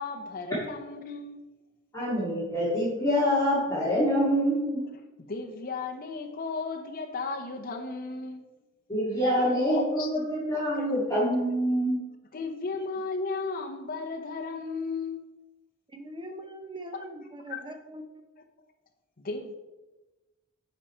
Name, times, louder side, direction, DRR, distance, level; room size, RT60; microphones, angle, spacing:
voice 1, 0.0-1.5 5.2-8.5 9.4-10.1 10.5-10.9 12.3-15.3 17.5-17.7 19.2-19.5, left 4 dB, 45° left, 3 dB, 0.7 m, -35 dB
voice 2, 1.9-4.8 8.9-12.0, equal, 15° left, -9 dB, 2.3 m, -26 dB
voice 3, 15.9-18.0, right 1 dB, 25° right, 5 dB, 0.9 m, -41 dB
9.4 x 4.9 x 4.4 m, 1.1 s
head